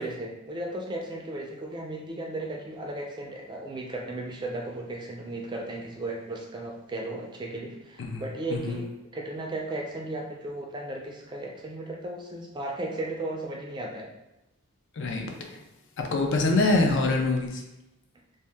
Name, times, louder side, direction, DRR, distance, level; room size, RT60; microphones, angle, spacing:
voice 1, 0.0-8.9 9.1-14.1, right 2 dB, 20° right, -1 dB, 0.4 m, -35 dB
voice 2, 8.0-8.8 14.9-15.6 16.0-17.6, left 2 dB, 55° left, 2 dB, 0.5 m, -25 dB
2.8 x 2.2 x 3.4 m, 0.94 s
head